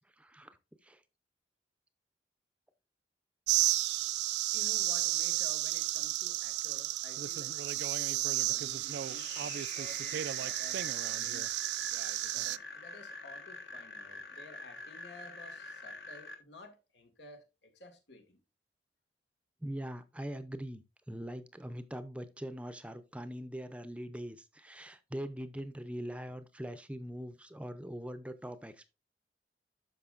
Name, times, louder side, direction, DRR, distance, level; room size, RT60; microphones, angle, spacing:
voice 1, 0.2-0.6 0.8-1.0 19.6-28.9, equal, 5° right, 0.6 m, -42 dB
sound 1, 3.5-12.6, right 15 dB, 75° right, 0.4 m, -32 dB
voice 2, 4.5-9.4 9.8-11.5 12.3-18.4, left 2 dB, 85° left, 2.0 m, -53 dB
sound 2, 8.6-16.3, left 3 dB, 65° left, 1.6 m, -47 dB
12.5 x 5.1 x 2.5 m
head